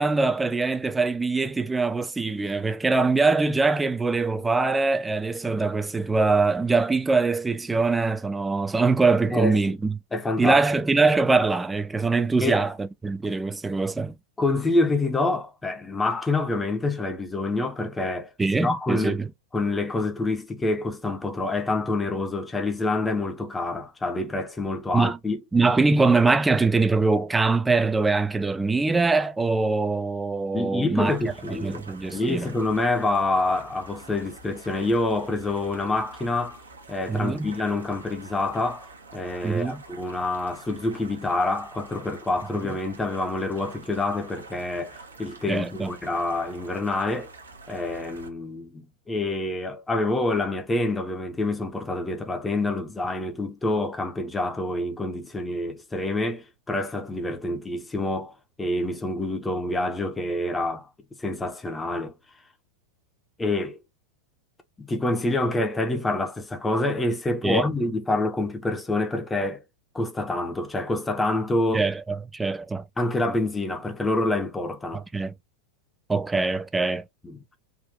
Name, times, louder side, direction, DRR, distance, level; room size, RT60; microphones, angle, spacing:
voice 1, 0.0-10.0 10.4-14.1 18.4-19.3 24.9-25.2 25.5-31.2 31.6-32.5 37.1-37.5 39.4-39.8 45.5-45.9 67.4-67.7 71.7-72.8 74.9-75.3 76.1-77.0, right 3 dB, 10° right, 0.4 m, -23 dB
voice 2, 9.3-9.8 10.1-10.6 12.4-12.6 14.4-18.3 18.6-19.2 19.5-25.4 30.5-31.8 32.1-36.6 36.9-47.3 47.7-60.9 61.2-62.1 63.4-63.8 64.8-69.6 69.9-71.9 73.0-75.0 77.2-77.4, left 2 dB, 10° left, 0.7 m, -27 dB
sound 1, 31.1-48.3, right 3 dB, 75° right, 0.8 m, -47 dB
3.7 x 2.5 x 2.7 m
figure-of-eight pair, 90°, 0 cm